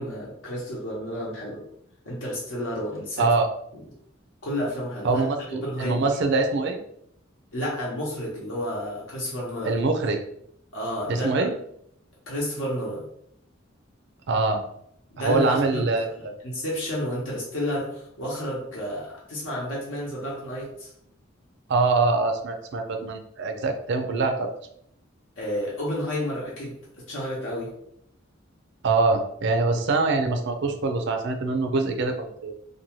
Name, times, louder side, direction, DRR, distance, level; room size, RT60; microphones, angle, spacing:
voice 1, 0.0-1.6 2.0-3.2 4.4-5.2 5.6-6.1 7.5-9.8 10.7-11.5 12.3-13.1 15.1-20.9 25.4-26.8 27.1-27.7, equal, 80° left, -5 dB, 0.8 m, -31 dB
voice 2, 3.2-3.5 5.0-6.8 9.7-10.2 11.1-11.5 14.3-14.6 15.2-16.3 21.7-24.5 28.8-32.5, right 3 dB, 60° right, 5 dB, 0.4 m, -24 dB
2.7 x 2.2 x 2.9 m, 0.71 s
head